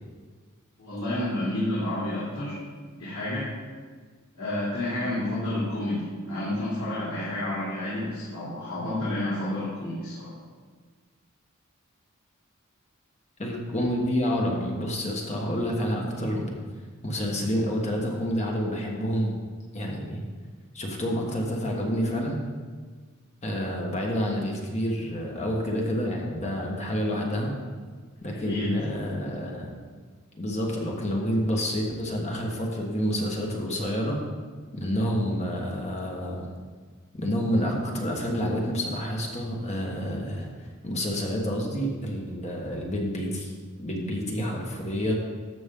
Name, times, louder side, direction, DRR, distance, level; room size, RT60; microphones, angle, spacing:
voice 1, 0.8-2.6 2.9-3.5 4.3-10.3 28.3-28.7, left 1 dB, 90° left, -10 dB, 3.1 m, -30 dB
voice 2, 13.4-16.5 17.0-19.3 19.7-20.2 20.7-22.4 23.4-27.5 28.2-29.7 30.4-34.2 34.7-36.5 37.1-40.5 40.8-43.5 43.8-45.1, equal, 30° left, -1 dB, 1.4 m, -28 dB
13.5 x 6.1 x 3.8 m, 1.5 s
head